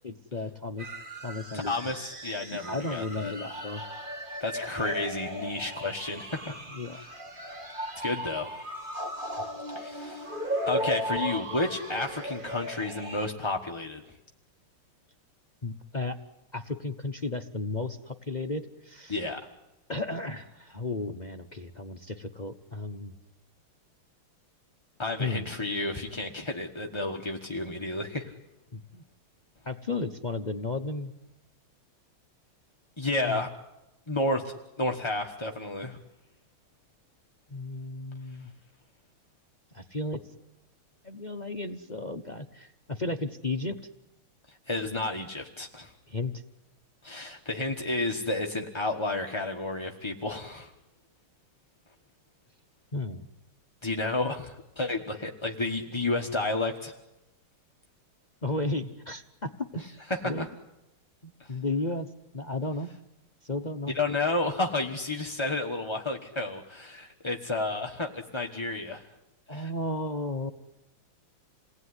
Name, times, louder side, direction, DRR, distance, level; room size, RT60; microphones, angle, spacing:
voice 1, 0.0-0.9 1.2-1.7 2.5-3.8 5.4-5.6 6.7-7.0 15.6-16.2 16.5-19.2 19.9-23.2 25.2-25.6 28.7-29.0 29.6-31.1 33.2-33.4 37.5-38.5 39.7-40.2 41.0-43.7 46.1-46.4 52.9-53.3 58.4-60.0 60.2-60.5 61.2-62.1 62.3-62.9 63.4-64.0 69.5-70.5, left 2 dB, 35° left, 8 dB, 0.7 m, -34 dB
sound 1, 0.8-13.3, equal, 25° right, 2.3 m, -36 dB
voice 2, 1.5-3.3 4.4-6.6 6.9-7.1 8.0-8.5 9.7-10.4 10.7-14.0 19.1-19.4 25.0-28.3 33.0-33.5 34.1-36.0 44.5-45.9 47.0-50.7 53.8-56.9 60.1-60.5 61.4-61.5 63.9-69.1 69.5-69.7, left 2 dB, 15° left, 2 dB, 1.1 m, -31 dB
29.0 x 19.5 x 9.8 m, 0.95 s
omnidirectional pair, 2.3 m